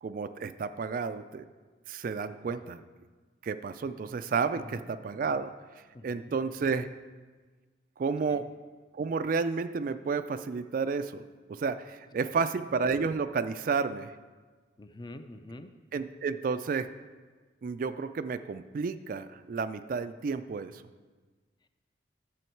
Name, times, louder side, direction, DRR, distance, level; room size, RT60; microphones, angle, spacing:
voice 1, 0.0-1.5 1.9-2.8 3.4-5.5 6.0-6.9 8.0-8.5 8.9-11.2 11.5-14.2 15.9-16.9 17.6-20.8, right 5 dB, 50° right, 11 dB, 0.3 m, -31 dB
voice 2, 4.5-4.9 5.9-6.4 8.3-8.5 14.8-15.7, left 1 dB, 25° left, 8 dB, 0.5 m, -46 dB
11.0 x 7.1 x 4.5 m, 1.4 s
head